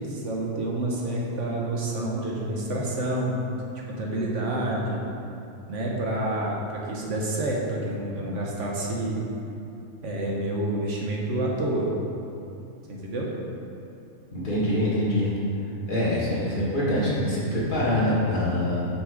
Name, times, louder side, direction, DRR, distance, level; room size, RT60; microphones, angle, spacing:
voice 1, 0.0-3.4 3.9-5.0 5.7-9.3 10.0-11.9 12.9-13.3, right 1 dB, 65° right, -2 dB, 1.4 m, -28 dB
voice 2, 14.3-15.3 15.9-18.8, left 1 dB, 40° left, -8 dB, 1.9 m, -24 dB
6.4 x 6.1 x 4.9 m, 2.7 s
omnidirectional pair, 1.4 m